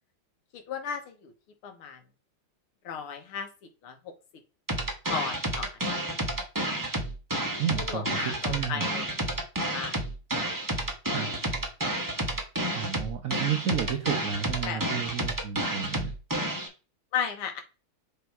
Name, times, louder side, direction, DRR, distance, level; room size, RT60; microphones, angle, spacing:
voice 1, 0.5-1.3 1.6-2.0 2.8-3.5 3.8-4.1 5.1-5.7 6.0-6.1 7.8-9.3 9.7-10.0 14.6-14.8 17.1-17.6, left 7 dB, 85° left, 6 dB, 2.0 m, -35 dB
sound 1, 4.7-16.7, right 1 dB, 15° right, 0.8 m, -30 dB
voice 2, 7.6-8.8 11.1-11.3 12.7-16.1, right 8 dB, 60° right, 4 dB, 0.9 m, -32 dB
6.8 x 3.1 x 4.7 m, 0.32 s
omnidirectional pair, 2.4 m